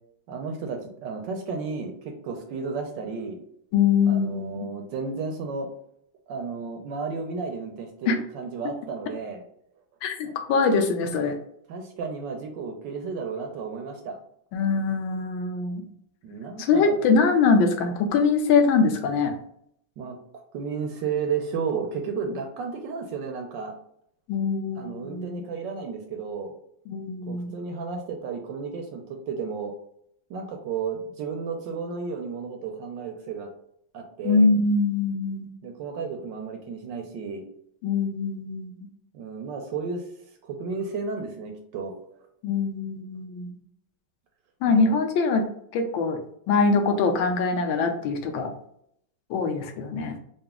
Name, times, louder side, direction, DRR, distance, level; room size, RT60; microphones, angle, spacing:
voice 1, 0.3-3.4 4.1-5.7 6.3-9.4 10.2-10.3 11.7-14.2 16.2-17.0 20.0-23.8 24.8-26.5 27.3-29.7 30.3-33.5 33.9-34.5 35.6-37.4 39.1-40.1 40.4-42.2 44.8-45.0, right 5 dB, 75° right, 3 dB, 1.1 m, -33 dB
voice 2, 3.7-4.7 8.1-8.2 8.6-8.7 10.0-11.4 14.5-15.8 16.6-19.3 24.3-25.5 26.9-27.6 34.2-35.5 37.8-38.7 42.4-43.5 44.6-45.5 45.7-46.2 46.5-48.5 49.3-50.2, left 4 dB, 75° left, 5 dB, 1.2 m, -23 dB
3.9 x 2.4 x 3.5 m, 0.71 s
omnidirectional pair, 2.3 m